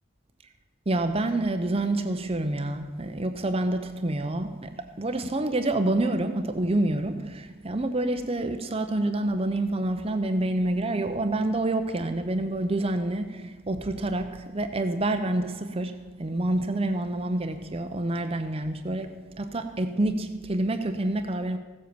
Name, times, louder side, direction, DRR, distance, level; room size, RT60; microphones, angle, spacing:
voice 1, 0.9-21.6, right 2 dB, 30° right, 0.7 m, -27 dB
15.5 x 7.8 x 6.8 m
head